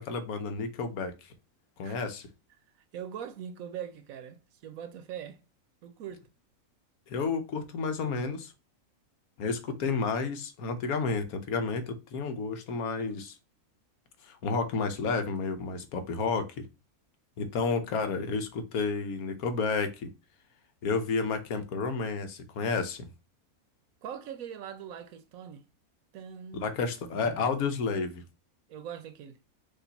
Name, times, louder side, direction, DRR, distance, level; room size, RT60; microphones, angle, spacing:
voice 1, 0.0-1.3 1.8-2.3 7.1-8.5 9.4-13.3 14.2-16.6 17.4-20.1 20.8-23.1 26.5-28.2, left 4 dB, 80° left, 1.3 m, -31 dB
voice 2, 2.8-5.4 5.8-6.3 24.0-25.6 26.1-26.7 27.1-27.6 28.7-29.4, right 9 dB, 75° right, 1.1 m, -42 dB
5.1 x 2.5 x 4.0 m
omnidirectional pair, 1.5 m